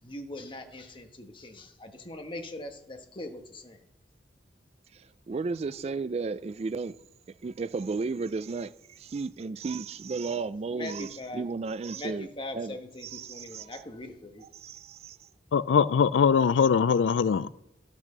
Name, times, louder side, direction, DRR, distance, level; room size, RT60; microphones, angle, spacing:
voice 1, 0.0-3.8 10.7-11.4 11.9-14.4, left 1 dB, 25° left, 1.3 m, -41 dB
voice 2, 4.9-7.0 7.4-12.3 12.5-13.7 14.6-15.2, right 4 dB, 35° right, 0.3 m, -34 dB
voice 3, 15.5-17.5, left 6 dB, 80° left, 0.4 m, -22 dB
12.0 x 6.0 x 6.7 m
head